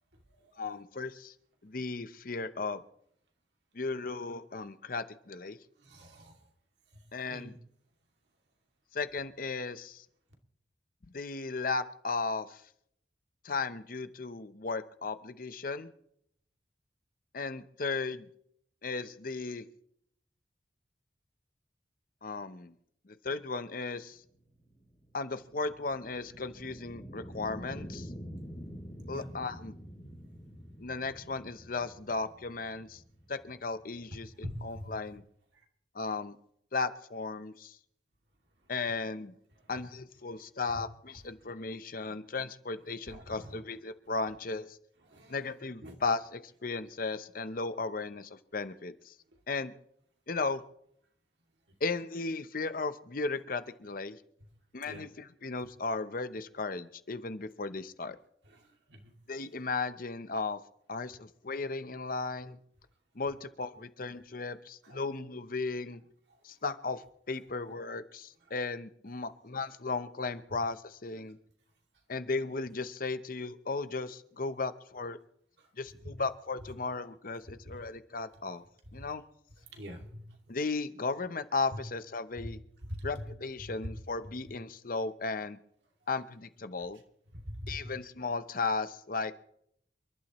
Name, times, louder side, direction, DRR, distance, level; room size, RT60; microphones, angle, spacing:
voice 1, 0.6-1.3 1.6-2.8 3.7-5.6 7.1-7.6 8.9-10.0 11.1-12.6 13.4-15.9 17.3-18.3 18.8-19.7 22.2-22.7 23.1-24.2 25.1-28.1 29.1-29.7 30.8-33.0 33.3-35.2 35.9-36.4 36.7-37.8 38.7-39.3 39.7-44.8 45.3-49.1 49.5-49.7 50.3-50.6 51.8-54.2 54.7-58.2 59.3-60.6 60.9-62.6 63.2-66.0 66.4-71.4 72.1-75.2 75.8-78.6 78.9-79.2 80.5-82.6 83.0-85.6 86.1-87.0 87.7-89.3, left 3 dB, 50° left, 12 dB, 0.8 m, -35 dB
voice 2, 5.9-6.3 7.3-7.6 29.1-29.3 34.4-34.9 43.1-43.4 45.1-45.3 45.8-45.9 54.8-55.0 58.9-59.0 79.7-80.2 82.4-82.5 82.9-83.2 83.6-83.7 87.3-87.9, equal, 70° right, 2 dB, 2.5 m, -42 dB
sound 1, 24.2-34.9, equal, 25° left, 2.9 m, -47 dB
29.0 x 11.5 x 3.1 m, 0.69 s
head